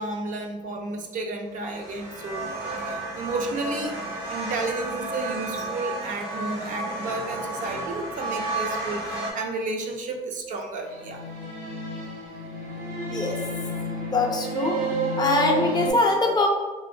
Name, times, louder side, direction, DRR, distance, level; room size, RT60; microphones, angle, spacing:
voice 1, 0.0-2.5 2.8-4.0 4.3-11.2, right 2 dB, 50° right, 2 dB, 0.4 m, -32 dB
sound 1, 1.6-9.3, right 2 dB, 75° right, 0.8 m, -32 dB
sound 2, 10.8-15.9, right 2 dB, 90° right, 1.2 m, -30 dB
voice 2, 13.0-13.3 14.1-14.7 15.2-16.5, left 2 dB, 25° left, 1 dB, 0.4 m, -22 dB
2.9 x 2.1 x 2.5 m, 1.2 s
cardioid pair, 110°, 17 cm